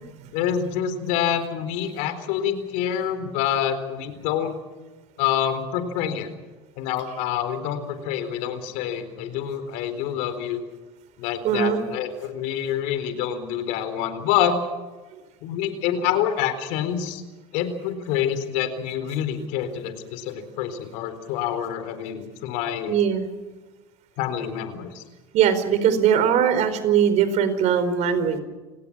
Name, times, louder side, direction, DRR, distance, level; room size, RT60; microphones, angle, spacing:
voice 1, 0.3-4.5 5.2-6.3 6.8-10.6 11.2-14.6 15.4-17.2 17.5-22.9 24.2-25.0, left 9 dB, 70° left, 10 dB, 4.1 m, -27 dB
voice 2, 11.4-11.8 15.1-15.2 22.9-23.3 25.3-28.4, right 8 dB, 60° right, 11 dB, 4.5 m, -20 dB
29.0 x 18.5 x 6.3 m, 1.2 s
hypercardioid pair, 85°, 14 cm